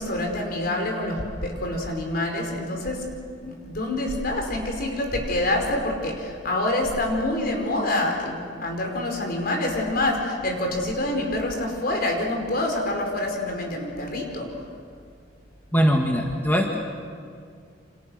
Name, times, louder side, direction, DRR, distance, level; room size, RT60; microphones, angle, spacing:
voice 1, 0.0-3.0 3.4-14.5, left 1 dB, 55° left, 2 dB, 5.1 m, -26 dB
voice 2, 15.7-16.8, equal, 10° left, 1 dB, 1.8 m, -21 dB
29.0 x 27.0 x 6.5 m, 2.2 s
head